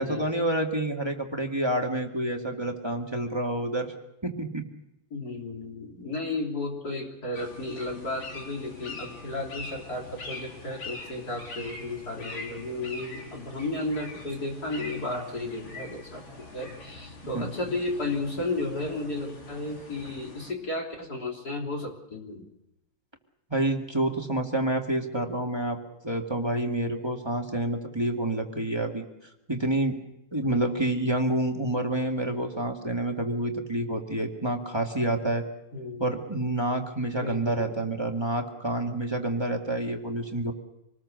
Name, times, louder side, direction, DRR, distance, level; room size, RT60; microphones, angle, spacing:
voice 1, 0.0-3.9 4.2-4.6 17.3-17.5 23.5-25.8 26.0-29.0 29.5-30.0 30.3-35.4 36.0-40.5, right 1 dB, 10° right, 2 dB, 1.9 m, -28 dB
voice 2, 5.1-22.5 30.4-31.0 35.7-36.1 37.1-37.7, left 2 dB, 45° left, 0 dB, 3.8 m, -33 dB
sound 1, 7.3-20.5, left 3 dB, 60° left, 4.2 m, -43 dB
26.0 x 19.5 x 6.5 m, 0.87 s
omnidirectional pair, 2.4 m